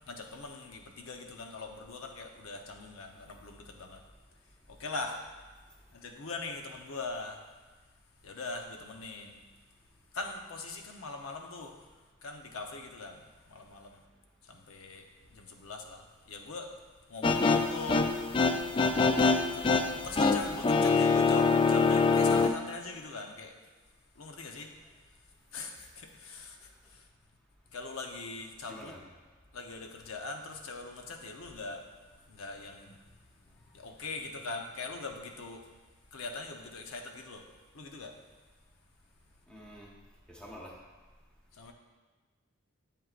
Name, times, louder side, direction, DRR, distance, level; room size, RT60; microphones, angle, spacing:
voice 1, 0.0-4.0 4.7-5.2 5.9-7.4 8.2-9.4 10.1-11.8 12.2-14.0 14.4-16.7 17.1-18.2 19.5-19.7 20.0-23.5 24.2-24.7 25.5-27.0 27.7-28.9 29.5-32.0 32.3-33.0 33.7-35.6 36.1-37.4 37.7-38.1 41.5-41.7, left 3 dB, 90° left, 3 dB, 0.8 m, -42 dB
sound 1, 17.2-22.5, left 4 dB, 25° left, 0.3 m, -25 dB
voice 2, 28.7-29.0 39.5-39.9 40.3-40.7, equal, 5° left, -4 dB, 1.1 m, -47 dB
7.9 x 7.6 x 2.5 m, 1.3 s
head